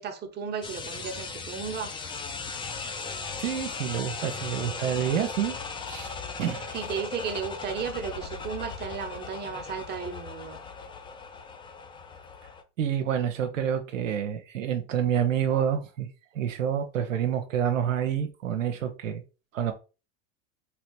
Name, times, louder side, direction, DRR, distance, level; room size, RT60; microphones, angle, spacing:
voice 1, 0.0-1.9 6.7-10.6, right 6 dB, 25° right, 1.0 m, -34 dB
sound 1, 0.6-12.6, left 5 dB, 15° left, 0.5 m, -38 dB
voice 2, 3.4-5.6 5.9-6.1 6.4-6.8 12.8-16.1 16.3-19.2 19.5-19.7, right 9 dB, 80° right, 0.7 m, -28 dB
4.0 x 3.2 x 3.1 m
hypercardioid pair, 85°, 39 cm